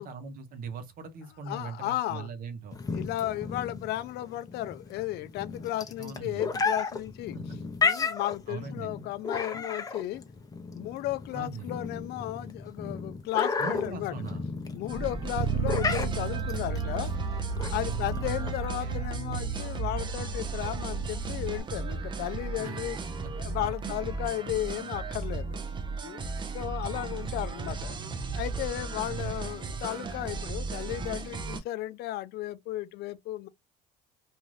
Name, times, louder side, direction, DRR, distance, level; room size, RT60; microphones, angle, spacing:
voice 1, 0.0-2.8 6.0-6.5 7.3-7.6 8.5-9.1 11.3-11.7 13.6-14.5 17.8-18.5 18.8-19.2 22.6-22.8 23.8-24.6 26.9-27.4 29.1-29.8, right 5 dB, 50° right, 1.0 m, -41 dB
voice 2, 1.5-2.3 2.9-7.4 7.8-10.2 10.7-14.1 14.7-17.1 17.7-23.0 23.4-25.6 26.0-26.3 26.5-28.0 28.3-33.5, left 14 dB, 60° left, 0.4 m, -34 dB
sound 1, 2.7-18.7, left 5 dB, 20° left, 0.7 m, -33 dB
sound 2, 14.9-31.6, right 4 dB, 25° right, 0.6 m, -36 dB
Bass guitar, 15.4-21.6, right 5 dB, 70° right, 0.6 m, -33 dB
2.7 x 2.5 x 3.1 m
cardioid pair, 120°, 19 cm